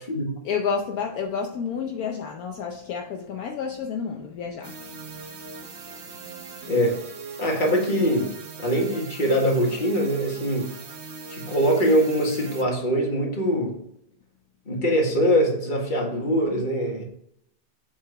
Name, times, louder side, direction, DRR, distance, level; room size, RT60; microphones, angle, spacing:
voice 1, 0.4-5.0 5.3-5.8 6.1-6.7, left 6 dB, 70° left, 2 dB, 1.2 m, -31 dB
sound 1, 4.6-12.6, right 5 dB, 50° right, 1.1 m, -40 dB
voice 2, 6.7-7.0 7.4-8.3 8.6-10.7 11.3-13.7 14.7-17.0, equal, 30° left, -1 dB, 1.8 m, -23 dB
7.6 x 4.5 x 4.7 m, 0.71 s
omnidirectional pair, 1.7 m